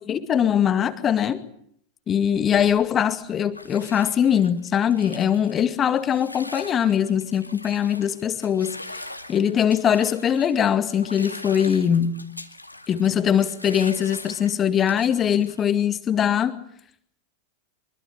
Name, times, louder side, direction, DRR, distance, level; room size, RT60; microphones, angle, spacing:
voice 1, 0.1-1.4 2.1-9.0 9.3-12.2 12.9-16.6, left 9 dB, 25° left, 10 dB, 2.1 m, -22 dB
Bathtub (filling or washing), 2.3-15.8, left 1 dB, 85° left, 2.2 m, -42 dB
25.0 x 24.0 x 8.9 m, 0.68 s
figure-of-eight pair, 90°, 0 cm